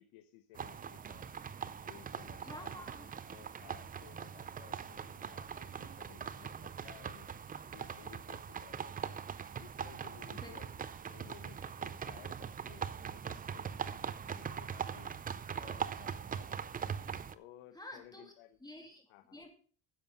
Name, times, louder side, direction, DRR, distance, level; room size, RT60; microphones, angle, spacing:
voice 1, 0.0-1.3 1.8-16.7 17.3-18.6 19.1-19.5, left 13 dB, 90° left, 10 dB, 1.0 m, -58 dB
sound 1, 0.6-17.3, right 7 dB, 20° right, 0.4 m, -42 dB
voice 2, 2.4-3.1 10.3-10.6 17.7-18.3 18.6-19.0 19.3-19.5, left 1 dB, 10° left, 3 dB, 2.5 m, -49 dB
10.5 x 7.3 x 5.5 m, 0.43 s
cardioid pair, 125°, 47 cm